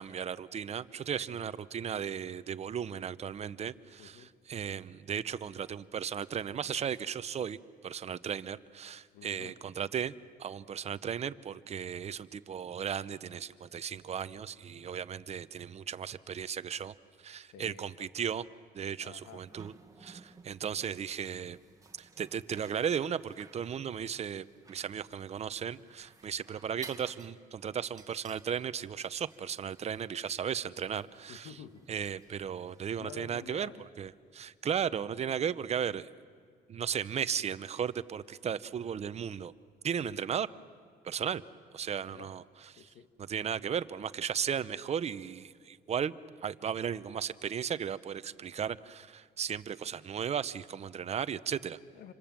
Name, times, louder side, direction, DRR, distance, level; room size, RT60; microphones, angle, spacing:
voice 1, 0.0-4.1 4.5-7.6 7.8-10.1 10.4-16.9 17.2-18.4 18.7-19.7 20.0-21.6 22.0-31.5 31.9-33.7 34.0-36.1 36.7-39.5 39.8-40.5 41.0-41.4 41.7-42.4 43.3-46.1 46.4-51.8, right 8 dB, 40° right, 14 dB, 0.8 m, -35 dB
voice 2, 4.0-4.3 9.1-9.6 17.4-18.1 19.0-19.4 31.3-31.8 33.0-33.9 41.3-41.5 41.9-42.3 42.7-43.1 51.9-52.1, left 7 dB, 80° left, 9 dB, 1.5 m, -50 dB
sound 1, 19.0-32.9, right 4 dB, 20° right, 1.7 m, -57 dB
28.0 x 25.0 x 7.6 m, 2.1 s
cardioid pair, 110°, 17 cm